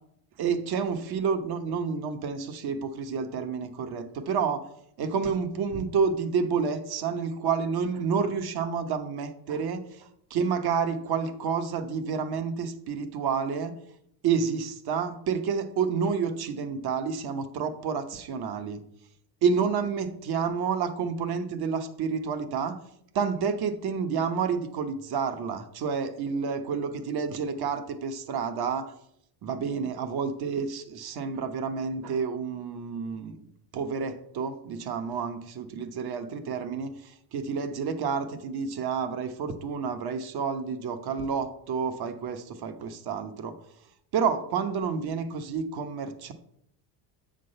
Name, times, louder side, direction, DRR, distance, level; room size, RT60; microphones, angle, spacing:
voice 1, 0.4-4.7 5.0-13.7 14.2-18.8 19.4-22.8 23.1-28.9 29.4-33.4 33.7-43.6 44.1-46.3, right 6 dB, 50° right, 8 dB, 1.1 m, -29 dB
7.6 x 3.9 x 6.5 m, 0.73 s
supercardioid pair, 95°, 49 cm